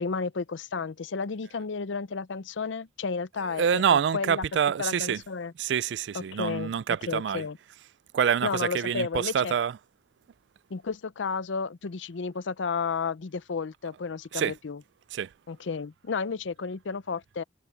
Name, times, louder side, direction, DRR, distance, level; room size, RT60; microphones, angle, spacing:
voice 1, 0.0-4.4 4.8-5.5 6.1-6.7 7.1-7.6 8.4-9.5 10.7-14.8 15.5-17.4, left 5 dB, 80° left, 0.6 m, -32 dB
voice 2, 3.5-5.2 5.6-7.5 8.1-9.8 14.3-14.5 15.1-15.3, right 8 dB, 70° right, 0.3 m, -26 dB
head